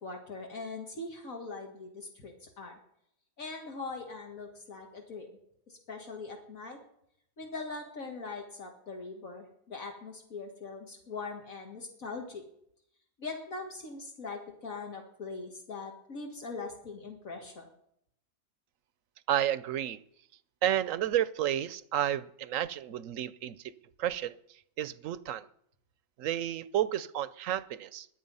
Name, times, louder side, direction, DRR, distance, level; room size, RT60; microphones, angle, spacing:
voice 1, 0.0-2.8 3.4-5.3 5.7-6.8 7.4-12.4 13.2-17.7, left 3 dB, 75° left, 1 dB, 2.3 m, -41 dB
voice 2, 19.3-20.0 20.6-23.7 24.0-24.4 24.8-25.4 26.2-28.1, right 11 dB, 70° right, 17 dB, 1.0 m, -31 dB
21.5 x 8.2 x 5.5 m, 0.73 s
omnidirectional pair, 1.5 m